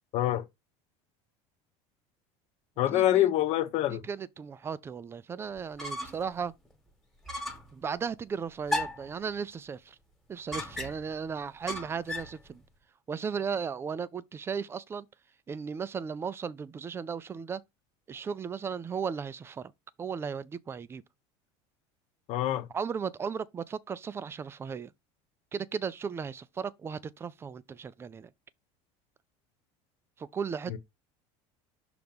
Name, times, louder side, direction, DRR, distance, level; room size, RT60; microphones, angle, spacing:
voice 1, 0.1-0.4 2.8-4.0 22.3-22.7 30.7-30.8, left 13 dB, 50° left, 1.0 m, -26 dB
voice 2, 2.9-3.3 3.9-6.5 7.7-10.0 10.3-12.6 13.1-15.1 15.5-17.6 18.1-19.7 20.0-21.0 22.7-24.9 25.5-28.3 30.2-30.8, right 6 dB, 15° right, 0.4 m, -36 dB
sound 1, 5.6-6.3 6.6-6.7 7.3-7.7 8.7-9.1 10.5-11.1 11.7-12.4, left 1 dB, ahead, 1.4 m, -35 dB
6.4 x 2.9 x 5.2 m
cardioid pair, 145°, 14 cm